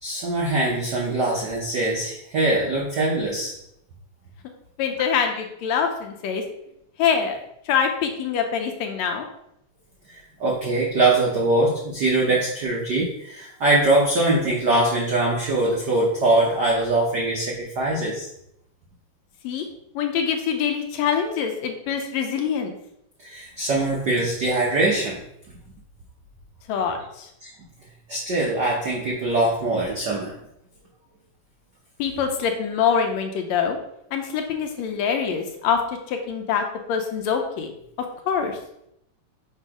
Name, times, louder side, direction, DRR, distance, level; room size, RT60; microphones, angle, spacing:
voice 1, 0.0-3.5 10.1-18.3 23.2-25.2 27.4-27.5 28.1-30.3, right 2 dB, 85° right, -3 dB, 0.9 m, -22 dB
voice 2, 4.8-6.4 7.0-7.4 7.7-9.3 19.4-19.7 20.0-22.7 26.7-27.3 32.0-33.8 34.1-35.8 36.1-37.7 38.3-38.6, left 7 dB, 75° left, 4 dB, 1.8 m, -24 dB
6.5 x 3.0 x 4.8 m, 0.78 s
omnidirectional pair, 3.3 m